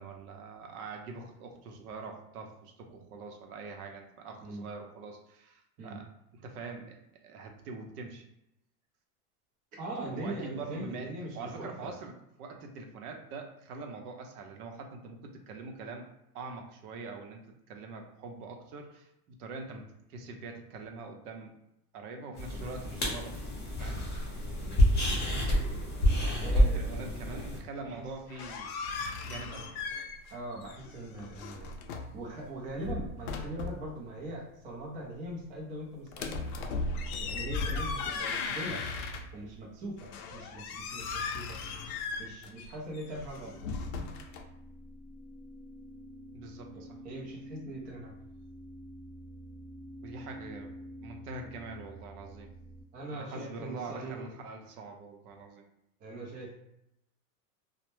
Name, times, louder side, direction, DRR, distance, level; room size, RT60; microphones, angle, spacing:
voice 1, 0.0-6.0 6.3-8.2 10.1-11.1 11.3-12.1 12.4-16.1 16.3-17.4 17.7-21.6 21.9-24.0 26.2-28.7 29.2-29.9 46.3-47.0 50.0-50.7 51.0-52.5 53.1-55.6, right 3 dB, 80° right, 3 dB, 0.7 m, -44 dB
voice 2, 9.7-11.9 24.6-24.9 26.4-27.5 27.8-28.1 30.3-31.7 32.1-36.4 37.2-38.8 39.3-41.6 42.2-43.5 46.7-48.1 52.9-54.2 56.0-56.6, right 1 dB, 20° right, -2 dB, 0.4 m, -41 dB
sound 1, 22.4-27.6, equal, 20° left, 0.7 m, -28 dB
sound 2, 28.1-30.4 30.6-32.2 32.7-33.9 36.1-39.5 40.0-44.4, left 4 dB, 70° left, 0.5 m, -37 dB
sound 3, 42.7-52.8, equal, 45° right, 0.8 m, -48 dB
2.1 x 2.0 x 3.0 m, 0.83 s
supercardioid pair, 130°, 45 cm